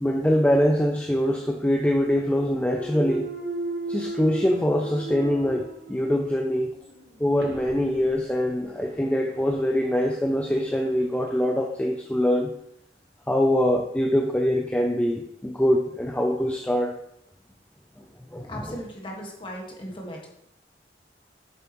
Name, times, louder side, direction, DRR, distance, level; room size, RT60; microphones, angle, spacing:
voice 1, 0.0-3.3 3.9-6.7 7.2-12.5 13.3-16.9 18.3-18.8, equal, 5° left, 2 dB, 0.4 m, -23 dB
Thump thud, 2.2-6.3 6.7-11.4, right 2 dB, 60° right, 1.2 m, -37 dB
voice 2, 18.5-20.3, equal, 30° left, -1 dB, 1.6 m, -37 dB
8.5 x 6.9 x 3.0 m, 0.78 s
head